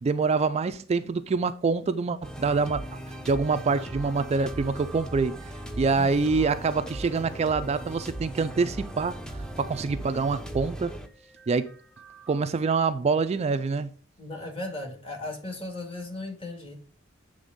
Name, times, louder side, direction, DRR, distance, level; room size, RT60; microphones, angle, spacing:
voice 1, 0.0-3.0 3.2-5.4 5.8-10.9 11.5-11.7 12.3-13.9, right 4 dB, 30° right, 0.3 m, -26 dB
sound 1, 2.2-12.4, right 1 dB, 5° left, 0.6 m, -38 dB
voice 2, 14.2-16.7, left 2 dB, 30° left, 1.9 m, -36 dB
8.1 x 3.4 x 5.1 m
head